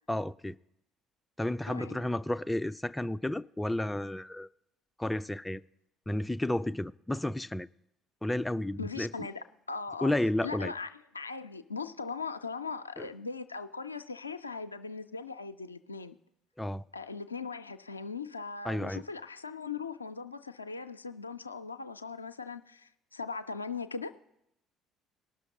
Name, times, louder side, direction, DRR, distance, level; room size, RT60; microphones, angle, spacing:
voice 1, 0.1-0.6 1.4-4.5 5.0-5.6 6.1-7.7 8.2-9.3 10.0-10.7 13.0-13.1 16.6-16.8 18.6-19.0, left 1 dB, 10° left, 0.3 m, -32 dB
voice 2, 1.7-2.0 8.8-10.1 10.4-16.2 16.9-24.1, left 4 dB, 85° left, 0.3 m, -39 dB
18.5 x 6.3 x 4.3 m
figure-of-eight pair, 55°, 0 cm